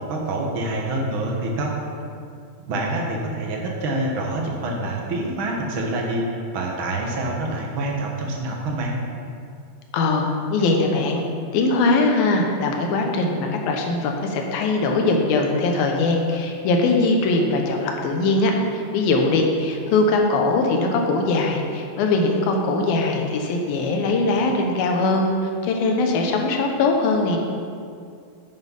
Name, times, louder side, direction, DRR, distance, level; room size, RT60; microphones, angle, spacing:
voice 1, 0.0-1.8 2.6-8.9, right 2 dB, 55° right, -1 dB, 1.4 m, -26 dB
voice 2, 9.9-11.2 11.5-27.4, left 3 dB, 75° left, 2 dB, 2.9 m, -21 dB
9.7 x 8.6 x 5.5 m, 2.3 s
omnidirectional pair, 4.3 m